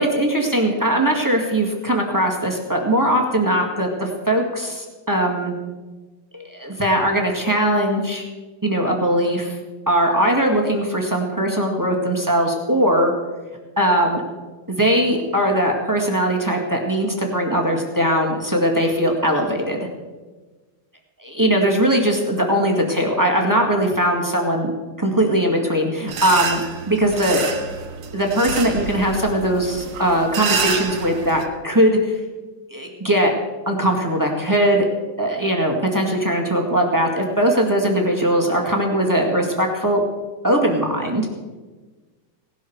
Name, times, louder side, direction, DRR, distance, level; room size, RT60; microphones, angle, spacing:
voice 1, 0.0-5.6 6.3-8.2 8.6-9.6 9.9-13.1 13.8-14.2 14.7-19.8 21.2-24.7 25.0-27.5 28.1-32.2 32.7-33.3 33.6-34.9 35.2-40.0 40.4-41.3, right 1 dB, 10° right, 1 dB, 1.3 m, -20 dB
sound 1, 26.1-31.4, right 5 dB, 60° right, 2.2 m, -28 dB
17.5 x 12.0 x 4.6 m, 1.3 s
omnidirectional pair, 3.3 m